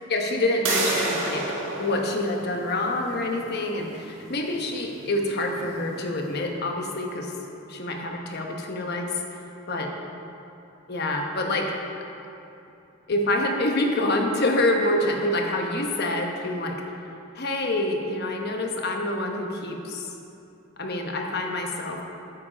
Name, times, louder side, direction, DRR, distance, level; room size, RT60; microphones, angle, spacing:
voice 1, 0.1-1.4 1.8-7.3 7.7-9.2 9.7-9.9 10.9-11.7 13.1-16.8 17.3-20.1 20.8-22.0, left 1 dB, 55° left, 2 dB, 1.1 m, -26 dB
sound 1, 0.7-6.2, right 2 dB, 70° right, 1.9 m, -32 dB
9.2 x 7.4 x 5.0 m, 2.8 s
head